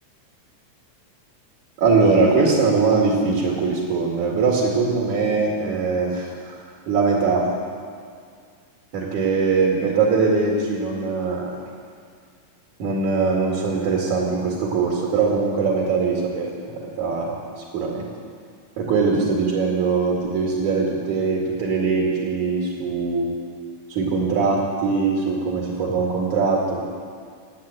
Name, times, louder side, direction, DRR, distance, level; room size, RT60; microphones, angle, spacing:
voice 1, 1.8-6.6 6.9-7.4 8.9-11.5 12.8-18.1 18.8-23.3 23.9-26.8, right 4 dB, 65° right, -2 dB, 3.5 m, -21 dB
17.0 x 9.3 x 9.0 m, 2.1 s
omnidirectional pair, 3.8 m